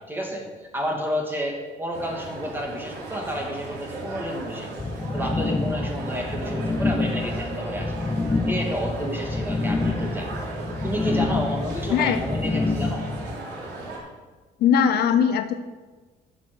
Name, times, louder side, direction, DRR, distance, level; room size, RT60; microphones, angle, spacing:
voice 1, 0.0-4.7 5.1-8.1 8.5-10.3 10.8-13.0, equal, 10° right, 1 dB, 2.5 m, -31 dB
sound 1, 1.9-14.0, right 2 dB, 80° right, 3.1 m, -36 dB
sound 2, 4.8-13.3, left 3 dB, 10° left, 0.4 m, -27 dB
voice 2, 14.6-15.5, left 7 dB, 70° left, 10 dB, 0.7 m, -20 dB
12.0 x 6.2 x 6.1 m, 1.3 s
cardioid pair, 110°, 17 cm